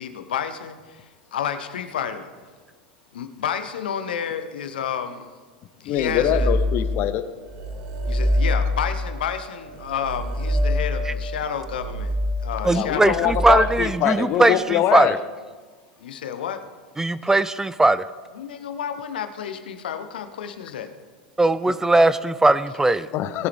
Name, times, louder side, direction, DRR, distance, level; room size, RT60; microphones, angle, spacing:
voice 1, 0.0-2.3 3.1-5.3 5.8-6.6 8.1-12.1 12.4-13.3 16.0-16.6 18.3-20.9, left 8 dB, 80° left, 9 dB, 0.9 m, -30 dB
voice 2, 5.8-7.3 12.7-15.2 21.7-21.8 23.1-23.5, left 11 dB, 50° left, 12 dB, 0.8 m, -23 dB
sound 1, 6.0-7.1 7.4-14.0, left 1 dB, 60° right, 1.9 m, -26 dB
voice 3, 12.6-15.1 17.0-18.0 21.4-23.1, right 2 dB, 10° right, 16 dB, 0.4 m, -19 dB
18.5 x 9.6 x 3.5 m, 1.4 s
hypercardioid pair, 95°, 5 cm